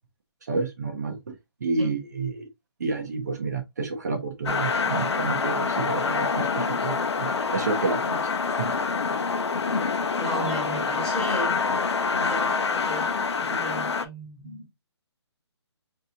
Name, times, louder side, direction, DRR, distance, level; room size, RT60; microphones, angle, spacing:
voice 1, 0.5-1.4 1.6-2.5 2.8-8.2 8.6-8.7, right 3 dB, 35° right, 0.6 m, -30 dB
sound 1, 4.5-14.1, left 5 dB, 65° left, 0.7 m, -26 dB
voice 2, 10.2-11.6 12.1-13.1 13.4-14.6, equal, 5° left, 1.1 m, -34 dB
5.2 x 2.8 x 2.7 m
hypercardioid pair, 170°, 15 cm